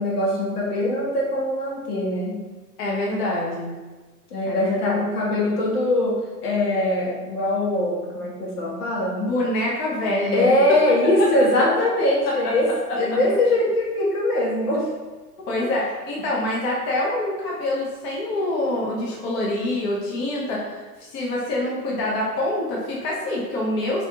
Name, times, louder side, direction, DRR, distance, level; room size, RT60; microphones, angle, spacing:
voice 1, 0.0-2.4 4.3-9.2 10.3-12.7 13.0-14.9, left 1 dB, 70° left, -4 dB, 1.2 m, -22 dB
voice 2, 2.8-3.7 4.4-5.0 9.2-10.8 11.2-11.3 12.2-12.5 12.9-13.2 15.5-24.1, left 1 dB, 25° left, -4 dB, 0.6 m, -26 dB
3.1 x 2.7 x 2.7 m, 1.3 s
figure-of-eight pair, 105°, 47 cm